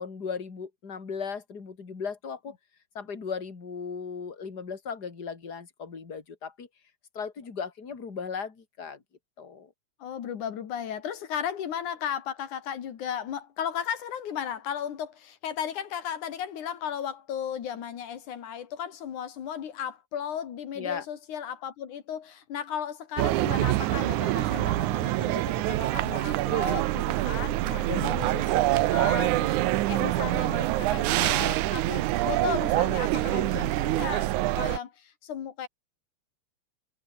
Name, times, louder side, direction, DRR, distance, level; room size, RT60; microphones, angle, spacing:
voice 1, 0.0-2.6 3.0-6.7 7.1-9.0 9.4-9.7 20.8-21.1 27.6-28.4 33.2-33.5, left 6 dB, 35° left, 3.6 m, -37 dB
voice 2, 10.0-27.6 27.9-28.4 28.9-29.6 29.9-34.3 34.6-35.7, left 9 dB, 85° left, 3.6 m, -35 dB
sound 1, 23.2-34.8, right 16 dB, 85° right, 2.3 m, -25 dB
omnidirectional pair, 3.4 m